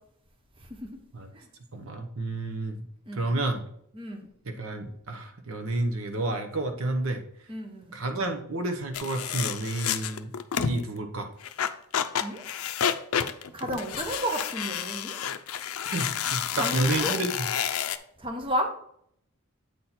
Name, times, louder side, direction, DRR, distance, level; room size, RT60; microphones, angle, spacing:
voice 1, 1.7-2.8 3.1-3.6 4.5-7.2 7.9-10.3 10.6-11.3 15.9-17.5, right 2 dB, 65° right, 6 dB, 0.9 m, -30 dB
voice 2, 3.9-4.3 7.5-8.0 12.2-12.4 13.5-15.2 16.6-17.1 18.2-18.7, right 1 dB, 25° right, 3 dB, 1.0 m, -32 dB
sound 1, 8.9-10.8 11.4-18.0, left 8 dB, 70° left, 0.5 m, -30 dB
8.5 x 4.1 x 4.3 m, 0.68 s
head